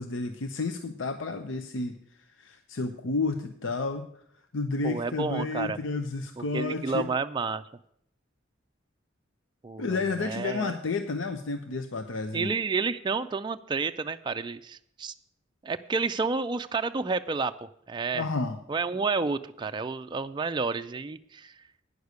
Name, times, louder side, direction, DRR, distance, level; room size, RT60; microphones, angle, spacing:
voice 1, 0.0-4.1 4.5-7.1 9.8-12.5 18.1-18.6, left 3 dB, 70° left, 7 dB, 0.7 m, -31 dB
voice 2, 4.8-5.8 6.4-7.6 9.6-10.7 12.3-15.1 15.6-18.2 18.7-21.5, right 4 dB, 25° right, 8 dB, 0.4 m, -30 dB
9.5 x 6.5 x 8.1 m, 0.70 s
head